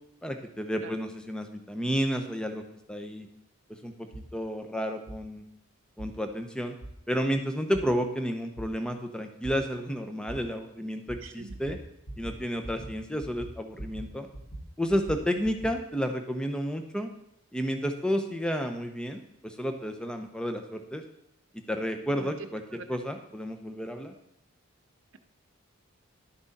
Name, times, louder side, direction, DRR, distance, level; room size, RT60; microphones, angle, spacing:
voice 1, 0.2-3.3 3.7-5.4 6.0-6.8 7.1-11.8 12.2-14.3 14.8-17.1 17.5-21.0 21.5-22.6 22.9-24.1, equal, 5° left, 5 dB, 0.7 m, -31 dB
sound 1, 4.1-4.3 5.1-5.2 6.0-6.1 6.8-6.9 7.7-7.8 8.6-8.7 9.4-9.5 10.3-10.4 11.1-11.2 11.5-11.8 12.1-12.4 12.6-12.9 13.2-14.1 14.3-15.7, right 1 dB, 50° left, 2.0 m, -40 dB
voice 2, 11.2-11.6 22.1-22.9, right 4 dB, 60° right, 9 dB, 0.7 m, -43 dB
11.5 x 6.1 x 4.1 m, 0.79 s
head